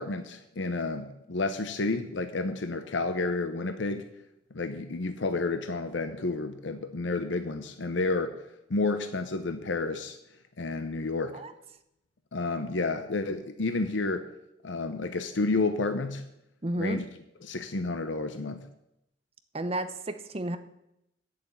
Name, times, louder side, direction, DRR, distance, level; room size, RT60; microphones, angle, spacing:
voice 1, 0.0-4.1 4.5-8.4 8.7-10.2 10.6-11.4 12.3-14.3 14.6-16.2 16.8-17.0 17.4-18.6, left 3 dB, 90° left, 9 dB, 0.8 m, -30 dB
voice 2, 16.6-17.0 19.5-20.6, right 1 dB, 35° right, 10 dB, 0.8 m, -32 dB
8.1 x 7.8 x 8.5 m, 0.83 s
head